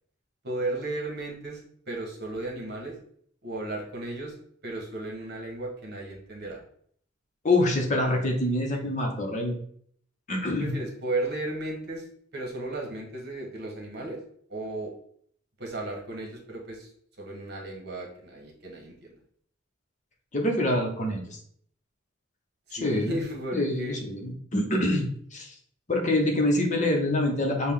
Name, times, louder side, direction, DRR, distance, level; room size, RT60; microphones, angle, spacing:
voice 1, 0.4-3.0 3.4-4.4 4.6-6.6 10.6-12.1 12.3-14.2 14.5-14.9 15.6-16.9 17.2-19.1 22.7-24.0, right 2 dB, 55° right, 0 dB, 1.3 m, -34 dB
voice 2, 7.4-9.5 10.3-10.7 20.3-21.4 22.7-23.1 23.5-25.5 25.9-27.7, left 1 dB, 35° left, 2 dB, 0.8 m, -26 dB
6.3 x 2.3 x 3.6 m, 0.62 s
head